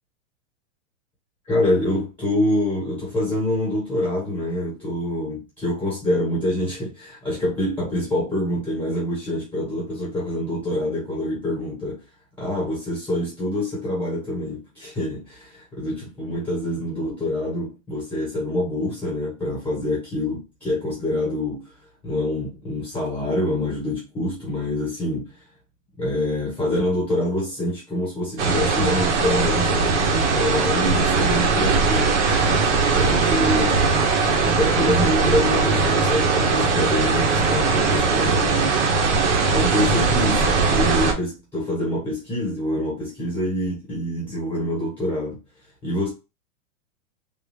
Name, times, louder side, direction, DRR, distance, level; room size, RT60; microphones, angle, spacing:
voice 1, 1.5-12.0 12.4-21.7 22.0-25.3 26.0-32.3 32.9-33.8 34.4-38.8 39.2-45.4 45.8-46.1, left 1 dB, 5° left, 1.1 m, -26 dB
sound 1, 28.4-41.1, right 4 dB, 55° right, 0.9 m, -20 dB
3.5 x 2.5 x 3.4 m
supercardioid pair, 180°, 41 cm